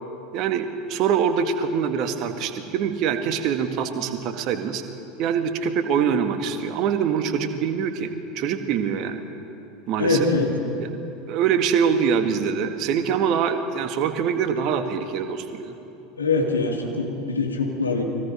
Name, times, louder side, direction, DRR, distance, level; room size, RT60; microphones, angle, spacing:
voice 1, 0.3-4.8 5.2-9.3 9.9-10.2 10.8-10.9 11.3-15.8, right 7 dB, 45° right, 7 dB, 1.9 m, -24 dB
voice 2, 10.0-10.5 16.2-18.0, left 3 dB, 80° left, 0 dB, 3.0 m, -23 dB
30.0 x 22.0 x 5.2 m, 2.8 s
figure-of-eight pair, 75°, 0 cm